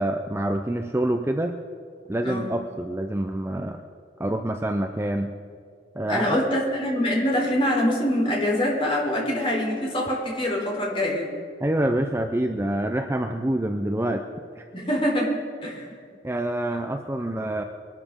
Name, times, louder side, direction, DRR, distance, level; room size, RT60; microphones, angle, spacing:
voice 1, 0.0-1.5 2.1-3.8 4.2-5.3 5.9-6.2 11.6-14.2 14.6-14.7 16.2-17.6, right 1 dB, 15° right, 5 dB, 0.5 m, -26 dB
voice 2, 6.1-11.3 14.7-15.9, left 1 dB, 30° left, -3 dB, 3.7 m, -24 dB
22.5 x 12.0 x 3.7 m, 2.2 s
head